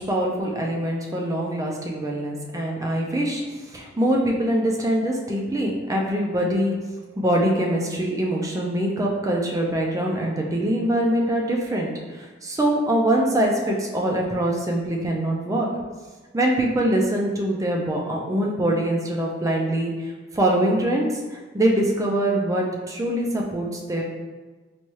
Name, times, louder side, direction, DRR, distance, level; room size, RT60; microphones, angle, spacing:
voice 1, 0.0-3.4 3.7-6.7 7.2-15.7 16.3-19.9 20.3-24.0, right 1 dB, 15° right, -1 dB, 0.4 m, -23 dB
4.1 x 2.3 x 3.1 m, 1.3 s
head